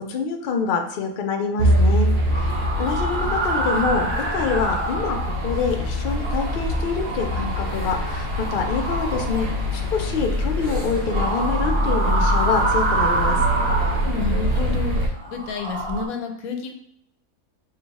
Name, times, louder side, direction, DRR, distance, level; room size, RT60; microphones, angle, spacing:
voice 1, 0.1-2.1 2.3-2.5 2.8-13.4, left 5 dB, 65° left, 4 dB, 0.5 m, -26 dB
Bowed string instrument, 1.6-6.0, right 1 dB, 60° right, 0.7 m, -24 dB
sound 1, 1.6-15.1, left 1 dB, 80° right, 1.2 m, -26 dB
sound 2, 2.3-5.7 6.1-10.1 11.0-14.6 15.1-16.1, right 2 dB, 20° right, 0.8 m, -27 dB
voice 2, 14.1-15.0 15.3-16.7, left 5 dB, 90° left, 5 dB, 1.0 m, -30 dB
3.2 x 2.2 x 4.0 m, 0.74 s
omnidirectional pair, 1.5 m